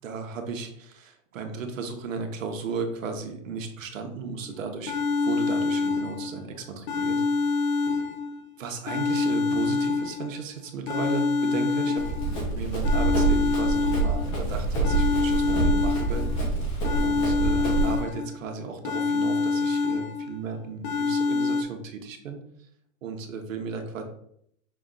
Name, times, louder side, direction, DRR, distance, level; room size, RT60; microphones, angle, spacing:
voice 1, 0.0-4.9 5.2-7.2 8.6-16.2 17.0-22.4 23.0-24.0, right 4 dB, 70° right, 5 dB, 1.1 m, -35 dB
sound 1, 4.4-4.5 4.9-6.4 6.9-8.4 8.9-10.4 10.9-12.4 12.8-14.4 14.8-16.4 16.8-18.4 18.8-20.4 20.8-21.6, left 4 dB, 50° left, 0.7 m, -26 dB
Run, 12.0-18.0, right 3 dB, 10° left, 0.5 m, -26 dB
5.9 x 2.4 x 3.8 m, 0.71 s
hypercardioid pair, 160°, 40 cm